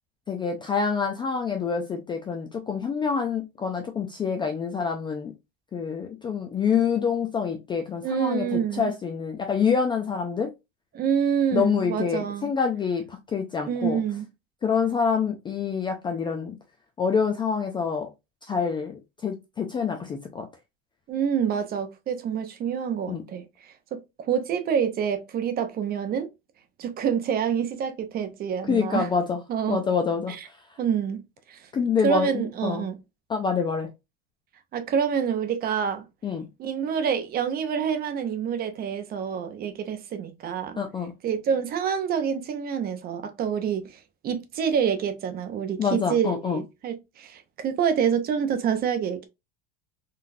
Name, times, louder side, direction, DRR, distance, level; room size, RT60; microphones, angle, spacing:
voice 1, 0.3-5.3 5.7-10.5 11.5-14.0 14.6-16.6 17.0-18.1 18.5-20.5 23.1-23.2 28.7-29.4 29.7-30.6 31.7-32.9 33.3-33.9 36.2-36.5 40.8-41.1 45.8-46.6, left 6 dB, 15° left, 0.3 m, -26 dB
voice 2, 8.0-8.9 10.9-12.5 13.6-14.3 21.1-23.4 23.9-24.0 24.3-26.3 26.8-29.1 29.5-29.8 30.3-30.4 30.8-31.2 31.5-31.6 32.0-33.0 34.7-36.0 36.6-40.8 41.2-44.0 44.2-49.3, right 7 dB, 30° right, 0.6 m, -27 dB
3.8 x 2.3 x 2.5 m
supercardioid pair, 140°, 30 cm